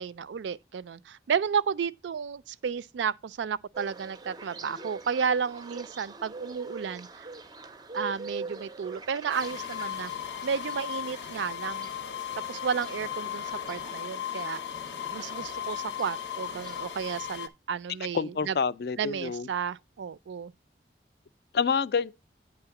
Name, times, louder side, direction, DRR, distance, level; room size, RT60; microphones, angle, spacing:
voice 1, 0.0-7.1 7.9-10.1 10.4-11.9 12.4-14.6 15.1-18.6 19.0-20.5, right 6 dB, 85° right, 0.4 m, -32 dB
sound 1, 3.7-17.0, right 3 dB, 20° right, 0.4 m, -44 dB
sound 2, 9.3-17.5, left 10 dB, 85° left, 0.7 m, -36 dB
voice 2, 18.1-19.5 21.5-22.1, left 5 dB, 60° left, 0.4 m, -27 dB
9.0 x 3.5 x 5.8 m
head